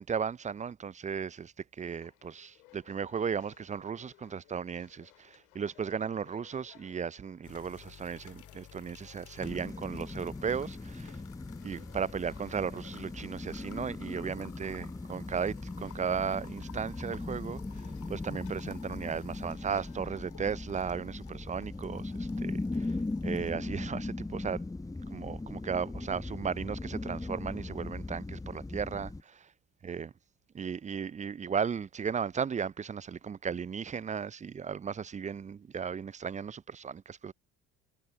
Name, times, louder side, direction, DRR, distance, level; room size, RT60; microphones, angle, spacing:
voice 1, 0.0-11.2 11.6-23.0 23.2-24.6 25.1-29.5 29.8-30.1 30.5-37.3, right 6 dB, 15° right, 0.5 m, -36 dB
sound 1, 1.9-21.5, left 22 dB, 65° left, 7.2 m, -62 dB
sound 2, 7.4-23.5, left 9 dB, 40° left, 3.4 m, -53 dB
sound 3, 9.4-29.2, left 2 dB, 5° left, 1.0 m, -39 dB
figure-of-eight pair, 55°, 46 cm